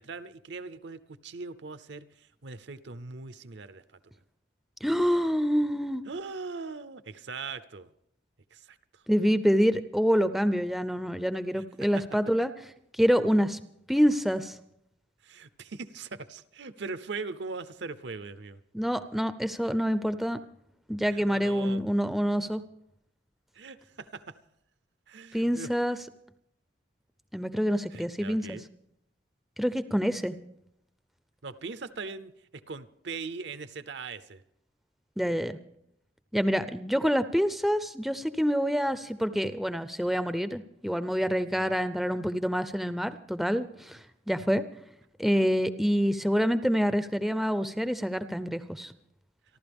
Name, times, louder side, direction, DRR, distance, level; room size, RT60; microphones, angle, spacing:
voice 1, 0.0-3.8 4.1-4.2 6.0-7.9 8.5-9.0 11.5-11.6 15.2-18.6 21.0-21.9 23.5-24.4 25.1-25.7 27.9-28.6 31.4-34.4 41.5-41.7, right 4 dB, 70° right, 14 dB, 0.7 m, -40 dB
voice 2, 4.8-6.0 9.1-12.5 13.0-13.6 13.9-14.5 18.7-20.4 20.9-22.6 25.3-26.0 27.3-28.6 29.6-30.4 35.2-35.6 36.3-44.0 44.3-44.6 45.2-48.9, equal, ahead, 11 dB, 0.5 m, -26 dB
28.0 x 12.0 x 3.5 m, 0.76 s
head